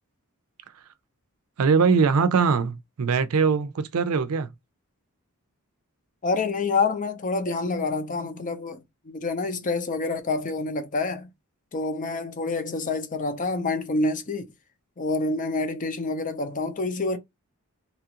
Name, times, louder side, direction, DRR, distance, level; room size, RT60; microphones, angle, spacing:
voice 1, 1.6-4.5, right 5 dB, 80° right, 0.5 m, -22 dB
voice 2, 6.2-11.3 11.7-14.5 15.0-17.2, left 3 dB, 35° left, 0.5 m, -27 dB
2.9 x 2.4 x 2.8 m
head